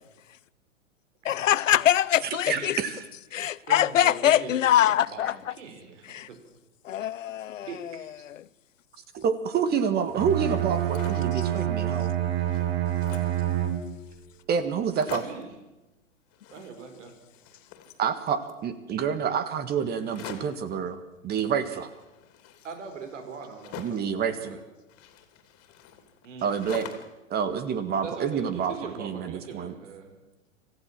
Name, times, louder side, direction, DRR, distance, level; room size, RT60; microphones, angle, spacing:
voice 1, 1.2-2.8 3.3-5.3 6.1-6.3 6.8-7.7, left 11 dB, 75° left, 0.8 m, -23 dB
voice 2, 2.5-2.9 9.1-12.1 14.5-15.2 18.0-21.9 23.8-24.6 26.4-26.9 27.3-29.7, right 7 dB, 25° right, 1.6 m, -28 dB
voice 3, 3.6-4.7 5.0-6.4 7.6-8.3 15.0-15.5 16.5-17.1 22.6-24.0 24.3-24.6 26.2-26.7 28.0-30.2, right 5 dB, 65° right, 5.0 m, -41 dB
Bowed string instrument, 10.1-14.2, right 11 dB, 50° right, 3.6 m, -27 dB
sound 1, 10.7-11.4 11.9-12.0 12.2-13.4 14.1-14.2 14.4-14.5 14.8-15.6 16.3-17.1 17.3-18.6 20.0-20.7 21.6-24.1 24.9-27.2 27.6-28.5, left 9 dB, 35° left, 3.0 m, -45 dB
26.0 x 15.0 x 7.5 m
hypercardioid pair, 115°, 39 cm